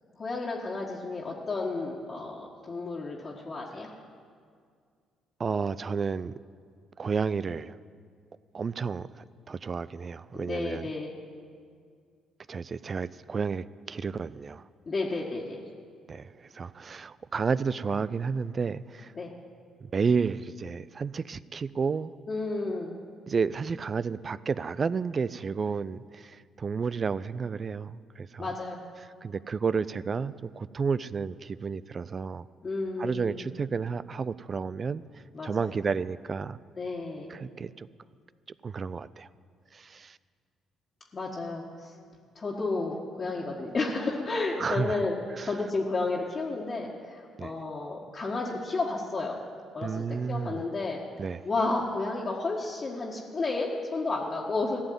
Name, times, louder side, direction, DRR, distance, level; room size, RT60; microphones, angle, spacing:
voice 1, 0.2-3.9 10.3-11.1 14.9-15.6 19.1-19.3 22.3-23.0 28.4-28.8 32.6-33.5 35.3-35.7 36.8-37.3 41.1-41.9 42.3-45.1 45.4-49.4 49.7-51.0 51.4-54.8, left 3 dB, 40° left, -4 dB, 1.7 m, -32 dB
voice 2, 5.4-6.3 7.0-7.8 8.5-10.9 12.5-14.6 16.1-19.1 19.8-22.1 23.3-28.5 29.2-32.5 33.0-35.0 35.4-36.6 37.3-37.9 38.6-39.3 39.7-40.2 44.6-45.1 45.3-45.5 47.4-47.5 49.8-50.6 51.2-51.4, right 5 dB, 40° right, 17 dB, 0.4 m, -31 dB
14.5 x 7.0 x 9.5 m, 2.1 s
hypercardioid pair, 50°, 0 cm